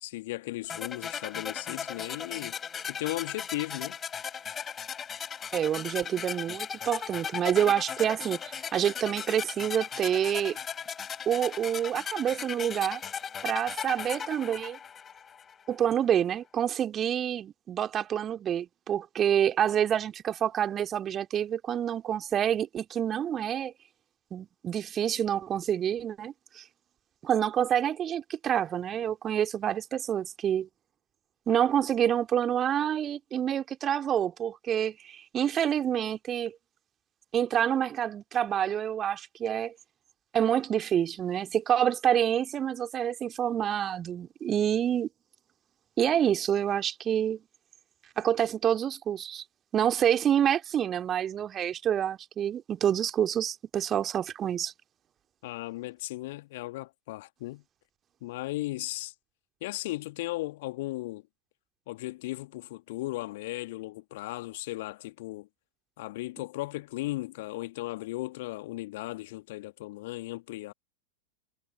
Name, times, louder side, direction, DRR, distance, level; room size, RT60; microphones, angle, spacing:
voice 1, 0.0-2.6 2.9-4.0 55.4-57.6 58.2-59.1 59.6-61.2 61.9-65.5 66.0-70.7, left 19 dB, 50° left, 1.7 m, -36 dB
sound 1, 0.7-15.6, left 7 dB, 20° left, 5.7 m, -37 dB
voice 2, 5.5-10.6 11.3-13.0 13.4-14.8 15.7-23.7 24.3-26.7 27.2-30.7 31.5-36.6 37.3-39.7 40.3-45.1 46.0-47.4 48.2-49.4 49.7-54.7, right 9 dB, 25° right, 2.5 m, -27 dB
figure-of-eight pair, 90°, 0 cm